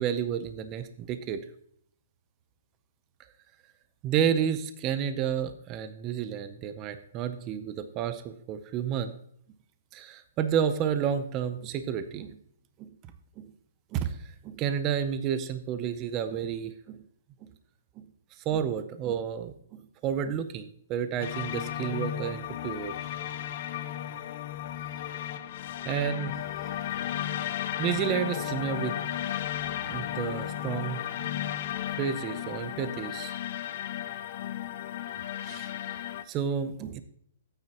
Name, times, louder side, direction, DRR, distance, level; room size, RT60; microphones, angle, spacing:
voice 1, 0.0-1.4 4.0-9.1 9.9-12.4 12.8-12.9 13.4-13.5 13.9-17.0 18.5-19.5 20.0-22.9 25.8-26.3 27.8-29.0 29.8-31.3 31.9-33.4 35.4-37.0, right 8 dB, 25° right, 11 dB, 0.6 m, -31 dB
sound 1, 21.2-36.2, left 11 dB, 40° left, 0.5 m, -34 dB
13.0 x 9.0 x 2.9 m, 0.64 s
hypercardioid pair, 160°, 0 cm